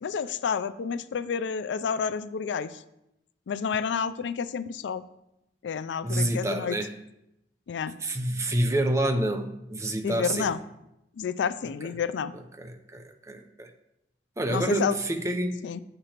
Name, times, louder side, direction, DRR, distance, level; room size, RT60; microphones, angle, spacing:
voice 1, 0.0-2.7 3.5-5.0 5.6-6.8 7.7-7.9 10.0-10.6 11.2-12.3 14.5-15.0 15.6-15.8, left 6 dB, 80° left, 14 dB, 0.4 m, -29 dB
voice 2, 6.0-6.9 8.0-10.5 11.8-11.9 12.6-13.7 14.4-15.6, right 1 dB, 15° right, 6 dB, 0.5 m, -28 dB
8.9 x 6.6 x 2.9 m, 0.86 s
head